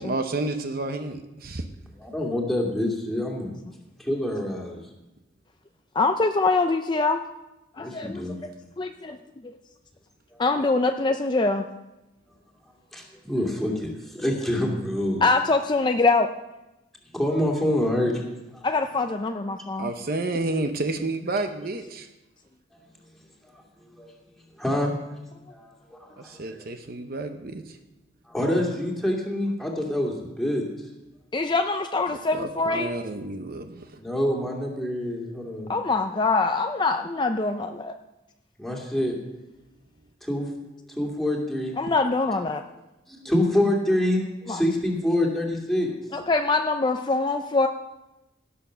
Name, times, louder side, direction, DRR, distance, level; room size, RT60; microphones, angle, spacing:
voice 1, 0.0-1.6 19.8-22.1 26.2-27.8 32.1-34.0, right 2 dB, 50° right, 7 dB, 0.8 m, -30 dB
voice 2, 2.0-3.5 4.0-4.8 7.8-8.4 10.3-10.4 12.9-15.2 17.1-18.2 18.5-18.6 23.5-23.6 24.0-24.1 24.6-24.9 25.5-26.6 28.3-30.6 34.0-35.8 38.6-39.1 40.2-40.5 41.0-41.8 43.1-45.9, left 1 dB, ahead, -1 dB, 2.4 m, -26 dB
voice 3, 6.0-7.2 7.8-8.5 8.8-9.2 10.4-11.6 15.2-16.3 18.6-19.9 31.3-32.9 35.7-37.9 41.8-42.6 44.5-44.6 46.1-47.7, left 3 dB, 25° left, 6 dB, 0.5 m, -24 dB
17.0 x 6.9 x 6.3 m, 0.98 s
head